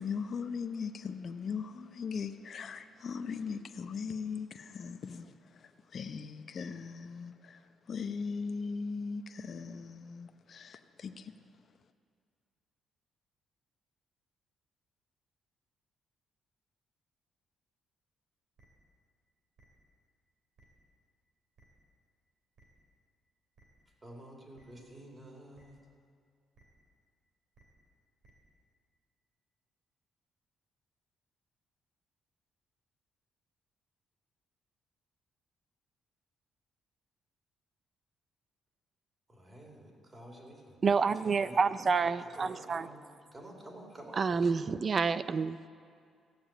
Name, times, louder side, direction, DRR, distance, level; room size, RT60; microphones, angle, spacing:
voice 1, 0.0-5.3 5.6-7.6 7.9-11.3, left 5 dB, 55° left, 0.7 m, -39 dB
sound 1, 18.6-18.7 19.6-19.7 20.6-20.7 21.6-21.7 22.6-22.7 23.6-23.7 24.6-24.7 25.6-25.7 26.5-26.6 27.5-27.6 28.2-28.3, right 3 dB, 60° right, 2.7 m, -62 dB
voice 2, 24.0-25.8 39.3-41.0 41.2-41.7 42.0-43.0 43.3-44.7, right 1 dB, 25° right, 3.3 m, -50 dB
voice 3, 40.8-42.9 44.2-45.7, right 5 dB, 40° right, 0.4 m, -28 dB
15.5 x 7.0 x 8.9 m
cardioid pair, 90°, 0 cm